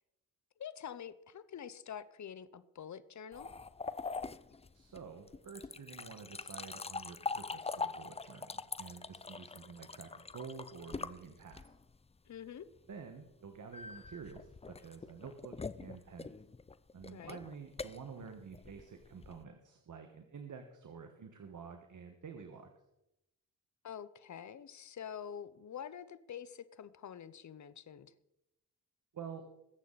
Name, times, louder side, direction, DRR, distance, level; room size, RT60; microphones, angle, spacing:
voice 1, 0.6-3.5 12.3-12.7 17.1-17.4 23.8-28.1, left 8 dB, 50° left, 14 dB, 0.9 m, -46 dB
sound 1, 3.3-12.0 13.7-19.4, left 4 dB, 15° left, 0.5 m, -43 dB
voice 2, 4.7-11.7 12.9-16.4 16.9-22.7 29.1-29.4, right 6 dB, 55° right, 5 dB, 1.6 m, -49 dB
21.0 x 8.5 x 4.2 m, 0.88 s
cardioid pair, 85°, 36 cm